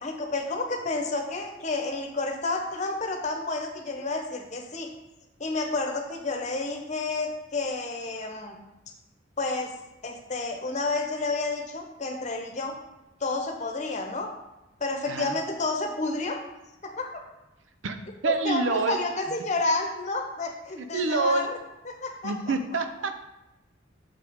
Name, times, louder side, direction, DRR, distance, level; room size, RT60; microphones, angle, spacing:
voice 1, 0.0-4.9 5.4-8.6 9.4-9.7 10.0-12.7 13.2-14.3 14.8-16.4 16.8-17.2 18.2-21.5 21.9-22.3, left 3 dB, 40° left, 3 dB, 0.9 m, -30 dB
voice 2, 18.2-19.0 20.8-21.5 22.2-23.2, right 4 dB, 85° right, 8 dB, 0.6 m, -27 dB
6.6 x 5.8 x 3.6 m, 0.96 s
head